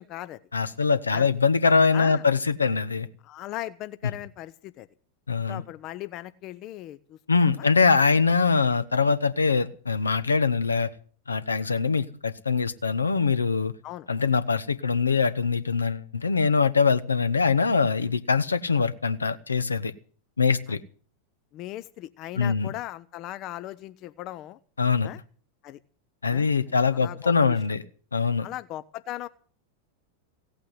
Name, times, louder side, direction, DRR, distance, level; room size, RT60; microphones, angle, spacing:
voice 1, 0.0-0.4 1.1-1.3 1.9-2.3 3.2-4.9 5.5-7.7 13.8-14.1 20.7-20.8 21.5-24.6 25.0-25.2 25.6-25.8 26.3-26.5 26.9-27.6 28.4-29.3, left 14 dB, 35° left, 15 dB, 0.7 m, -38 dB
voice 2, 0.5-3.1 5.3-5.6 7.3-10.9 11.3-13.7 14.1-19.9 20.4-20.8 22.4-22.7 24.8-25.1 26.2-27.8 28.1-28.5, left 5 dB, 75° left, 13 dB, 1.0 m, -23 dB
17.0 x 8.8 x 9.7 m, 0.44 s
figure-of-eight pair, 90°, 0 cm